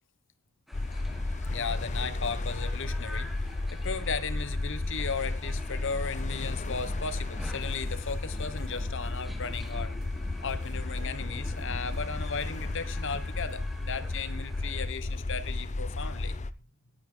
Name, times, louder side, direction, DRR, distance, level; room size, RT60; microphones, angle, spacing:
sound 1, 0.7-16.5, left 2 dB, 35° left, 0.6 m, -33 dB
sound 2, 0.7-14.8, equal, ahead, 1.7 m, -48 dB
voice 1, 1.5-9.9 10.4-16.3, left 5 dB, 60° left, 13 dB, 1.2 m, -36 dB
sound 3, 5.9-13.6, equal, 20° right, 3.5 m, -53 dB
18.0 x 9.6 x 3.9 m, 0.32 s
head